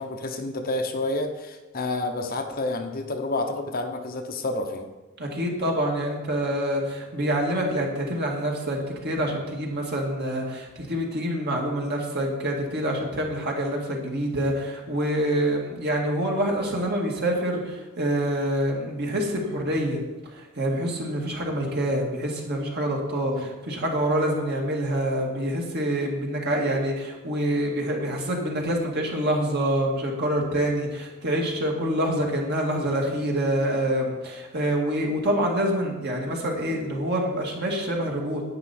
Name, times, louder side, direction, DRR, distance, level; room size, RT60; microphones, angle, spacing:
voice 1, 0.0-4.9 23.3-23.5, left 2 dB, 40° left, 5 dB, 0.8 m, -29 dB
voice 2, 5.2-38.4, right 1 dB, 50° right, -1 dB, 2.1 m, -26 dB
10.5 x 8.9 x 4.3 m, 1.2 s
head